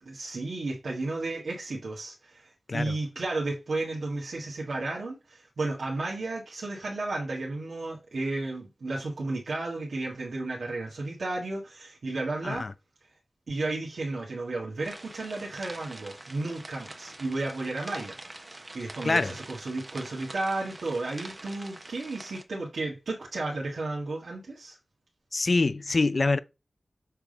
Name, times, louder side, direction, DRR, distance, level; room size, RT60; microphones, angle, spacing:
voice 1, 0.0-12.6 13.5-24.8, right 2 dB, 90° right, 1.6 m, -33 dB
sound 1, 14.8-22.4, right 2 dB, 30° right, 1.1 m, -45 dB
voice 2, 25.3-26.4, left 3 dB, 50° left, 0.5 m, -25 dB
7.3 x 3.5 x 5.1 m
wide cardioid pair, 90°, 0 cm